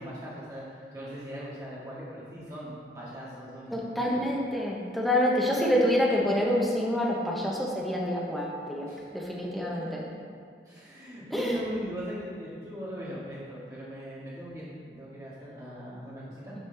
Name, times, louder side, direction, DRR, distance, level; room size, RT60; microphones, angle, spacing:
voice 1, 0.0-4.0 8.9-9.0 10.7-16.5, equal, 20° right, -8 dB, 1.7 m, -39 dB
voice 2, 3.7-10.0 11.3-11.6, equal, ahead, -4 dB, 0.8 m, -27 dB
9.2 x 4.8 x 3.4 m, 2.2 s
head